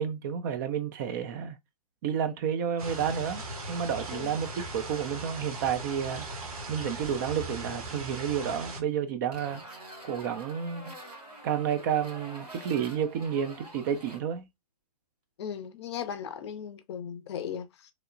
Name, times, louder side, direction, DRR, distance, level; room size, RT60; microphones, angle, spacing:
voice 1, 0.0-1.6 2.0-3.4 3.7-4.5 4.7-6.3 6.7-9.6 10.0-10.9 11.4-14.5, right 8 dB, 30° right, 0.4 m, -30 dB
sound 1, 2.8-8.8, right 2 dB, 70° right, 0.9 m, -39 dB
sound 2, 9.3-14.2, right 1 dB, 90° right, 1.7 m, -46 dB
voice 2, 15.4-17.9, left 8 dB, 45° left, 0.5 m, -37 dB
2.9 x 2.0 x 2.5 m
figure-of-eight pair, 120°, 20 cm